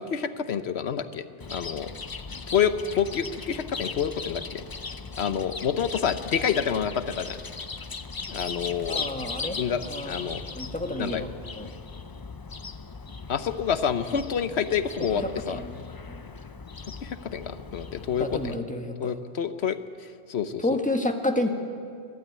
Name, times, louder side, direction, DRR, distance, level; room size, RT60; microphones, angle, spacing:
voice 1, 0.0-1.9 2.5-4.6 5.2-7.4 8.3-9.0 9.6-10.4 11.0-11.2 13.3-15.6 17.0-18.6 19.0-19.8 20.3-20.6, left 7 dB, 80° left, 11 dB, 1.2 m, -28 dB
Chirp tweet, 1.4-18.6, left 4 dB, 30° left, 0.4 m, -38 dB
voice 2, 8.9-11.3 11.6-11.7 15.1-15.8 16.1-16.2 18.2-19.2 20.6-21.5, left 1 dB, 5° left, 3 dB, 1.5 m, -30 dB
24.0 x 12.5 x 9.5 m, 2.2 s
omnidirectional pair, 1.1 m